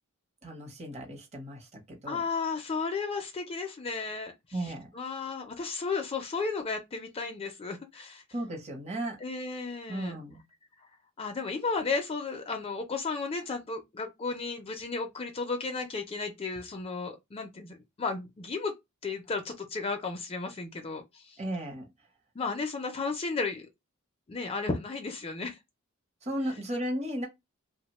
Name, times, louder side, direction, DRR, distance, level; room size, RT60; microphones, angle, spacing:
voice 1, 0.4-2.2 4.5-4.9 8.3-9.2 9.9-10.4 21.4-21.9 26.2-27.3, right 1 dB, 30° right, 0.7 m, -35 dB
voice 2, 2.1-4.3 4.6-8.2 9.2-10.2 11.2-18.7 19.0-21.4 22.4-23.7 24.3-25.6, left 4 dB, 25° left, 0.4 m, -34 dB
2.8 x 2.1 x 2.9 m
head